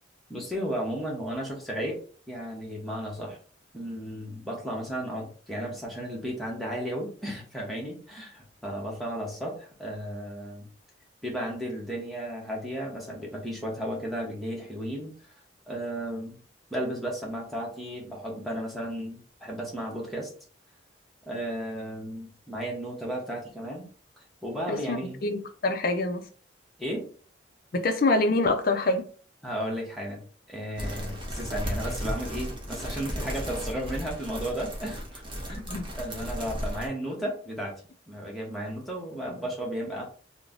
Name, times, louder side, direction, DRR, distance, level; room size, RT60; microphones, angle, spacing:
voice 1, 0.3-2.0 2.3-3.4 3.7-10.7 11.2-15.1 15.7-16.4 16.7-20.3 21.3-23.9 24.4-25.2 26.8-27.1 29.4-35.2 35.5-37.7 38.1-40.1, equal, ahead, 0.9 m, -34 dB
voice 2, 24.7-26.2 27.7-29.0 35.7-35.8, left 2 dB, 50° left, 0.5 m, -25 dB
sound 1, 30.8-36.9, equal, 25° right, 0.8 m, -35 dB
3.1 x 2.1 x 3.7 m
head